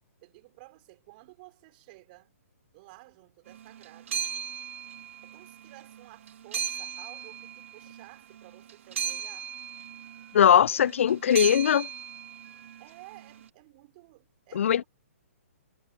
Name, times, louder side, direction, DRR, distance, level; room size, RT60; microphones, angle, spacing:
voice 1, 0.2-2.3 2.7-4.3 5.2-9.5 10.7-11.4 12.8-14.9, right 23 dB, 35° right, 5.2 m, -53 dB
sound 1, 3.5-13.4, right 8 dB, 60° right, 2.3 m, -37 dB
voice 2, 10.3-11.9 14.5-14.8, left 9 dB, 60° left, 0.4 m, -20 dB
figure-of-eight pair, 130°, 8 cm